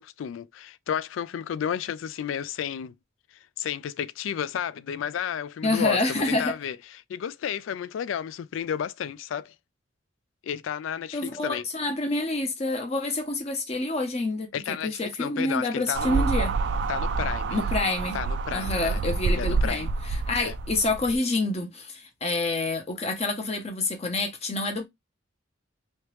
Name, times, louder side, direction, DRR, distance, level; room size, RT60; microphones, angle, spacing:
voice 1, 0.0-2.9 3.3-9.6 10.4-11.7 14.5-16.3 16.9-17.6 18.1-19.0 19.3-19.9 20.4-20.5, left 8 dB, 90° left, 0.3 m, -32 dB
voice 2, 5.6-6.6 11.1-16.5 17.5-18.2 18.5-19.9 20.3-24.9, left 2 dB, 35° left, 0.7 m, -28 dB
sound 1, 15.9-21.2, right 4 dB, 65° right, 0.3 m, -27 dB
3.2 x 2.9 x 3.0 m
head